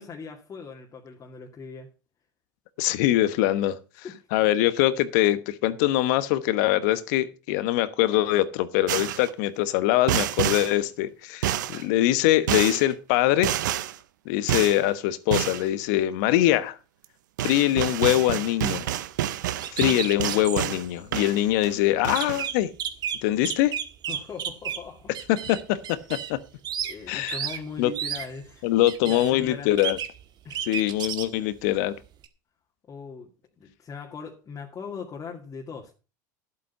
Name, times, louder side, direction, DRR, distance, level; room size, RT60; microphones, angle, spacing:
voice 1, 0.0-1.9 4.0-4.2 24.1-25.1 26.8-28.7 29.0-29.7 30.4-30.7 32.9-33.3 33.6-35.9, left 5 dB, 30° left, 2.3 m, -39 dB
voice 2, 2.8-3.8 4.3-13.5 14.2-16.8 17.4-18.9 19.7-22.7 23.2-23.7 25.4-26.4 27.1-27.4 27.8-27.9 28.6-30.0 30.7-32.0, left 14 dB, 65° left, 1.1 m, -23 dB
sound 1, 8.9-9.3 10.1-10.7 11.4-11.8 12.5-12.8 13.4-14.0 14.5-14.8 15.3-15.6 17.0-17.1 17.4-20.8 21.1-21.7 22.0-22.5, right 12 dB, 75° right, 0.8 m, -28 dB
sound 2, 19.6-20.7 21.3-21.4 21.6-21.7 22.2-24.9 25.1-26.4 26.6-26.9 27.3-27.6 27.9-28.3 28.9-29.3 29.8-30.2 30.5-31.3 32.2-32.3, right 9 dB, 45° right, 1.6 m, -32 dB
11.0 x 8.2 x 5.6 m
hypercardioid pair, 85°, 10 cm